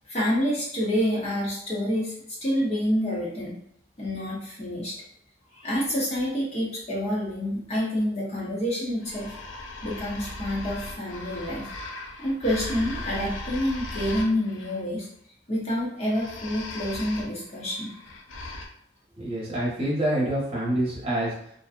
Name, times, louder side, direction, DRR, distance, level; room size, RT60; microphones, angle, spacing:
voice 1, 0.1-2.1 2.4-3.6 4.0-5.0 5.5-9.4 9.8-11.7 12.2-15.1 15.5-17.9, equal, 35° left, -6 dB, 0.7 m, -28 dB
sound 1, 9.0-14.8 16.0-18.7, left 2 dB, 85° left, 0.4 m, -38 dB
voice 2, 19.2-21.5, right 1 dB, 30° right, -7 dB, 0.9 m, -27 dB
2.5 x 2.2 x 2.4 m, 0.70 s
head